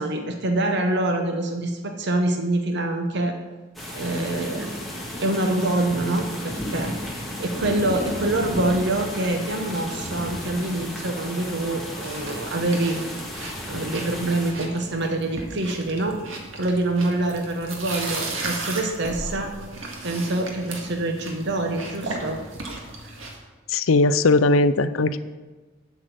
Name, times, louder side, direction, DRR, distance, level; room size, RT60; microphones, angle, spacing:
voice 1, 0.0-3.4 3.9-4.8 5.2-13.1 13.7-16.2 16.5-19.5 20.0-22.4 23.0-23.1, right 2 dB, 60° right, 4 dB, 0.9 m, -25 dB
sound 1, 3.7-14.5, left 1 dB, ahead, 1.7 m, -33 dB
sound 2, 12.0-23.4, right 2 dB, 85° right, 1.8 m, -35 dB
voice 2, 23.7-25.2, left 3 dB, 90° left, 14 dB, 0.5 m, -19 dB
7.9 x 6.4 x 7.9 m, 1.3 s
head